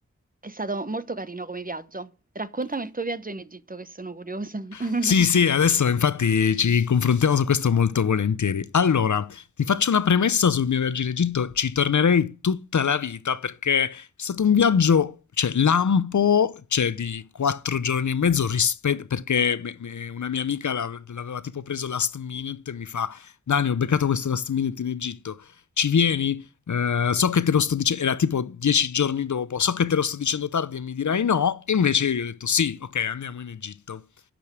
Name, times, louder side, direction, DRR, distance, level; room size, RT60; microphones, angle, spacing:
voice 1, 0.4-2.1 2.3-5.3, right 3 dB, 30° right, 0.8 m, -32 dB
voice 2, 4.7-25.4 25.8-34.0, left 7 dB, 75° left, 0.6 m, -23 dB
10.5 x 5.2 x 8.2 m
wide cardioid pair, 55°, 30 cm